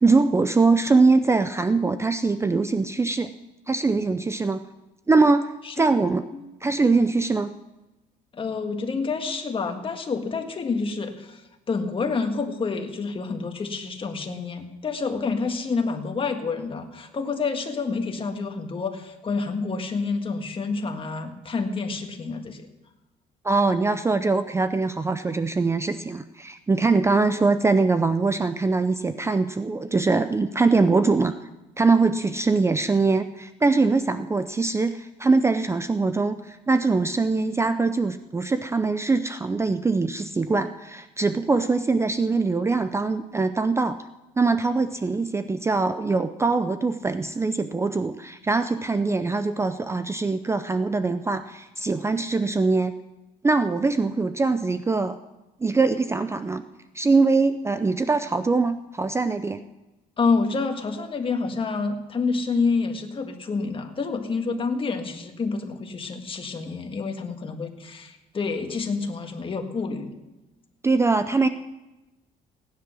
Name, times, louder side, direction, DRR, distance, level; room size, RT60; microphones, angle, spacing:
voice 1, 0.0-3.3 3.7-4.6 5.1-6.2 6.6-7.5 23.4-31.3 31.8-44.1 44.4-52.9 53.4-55.2 55.6-56.6 56.9-59.6 70.8-71.5, right 3 dB, 15° right, 11 dB, 0.5 m, -22 dB
voice 2, 5.6-6.0 6.3-6.5 8.3-11.4 11.7-22.7 60.2-70.1, left 4 dB, 30° left, 5 dB, 1.7 m, -28 dB
16.5 x 10.5 x 6.2 m, 1.1 s
cardioid pair, 110°, 17 cm